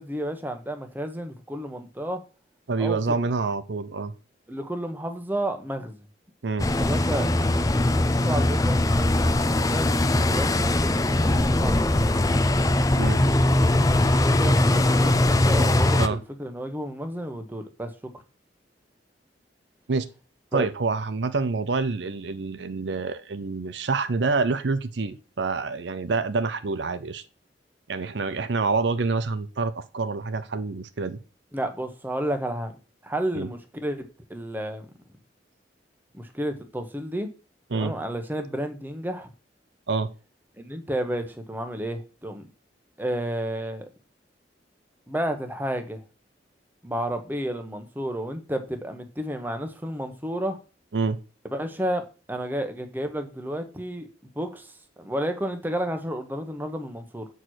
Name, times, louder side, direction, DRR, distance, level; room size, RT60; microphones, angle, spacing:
voice 1, 0.0-2.2 2.8-3.2 4.5-6.0 6.8-7.7 7.9-12.4 14.2-18.1 20.5-20.7 31.5-32.7 33.0-34.9 36.1-37.3 37.7-39.3 40.6-42.4 43.0-43.9 45.1-46.0 46.8-50.6 51.5-54.1 54.3-57.3, right 1 dB, 10° right, 1.0 m, -31 dB
voice 2, 2.7-4.1 6.4-6.7 13.0-13.2 16.0-16.2 19.9-20.1 20.5-27.2 27.9-31.2 33.3-33.5 37.7-37.9 39.9-40.1 50.9-51.2, right 4 dB, 75° right, 0.6 m, -27 dB
sound 1, 6.6-16.1, left 1 dB, 20° left, 0.5 m, -21 dB
7.7 x 4.6 x 6.3 m
head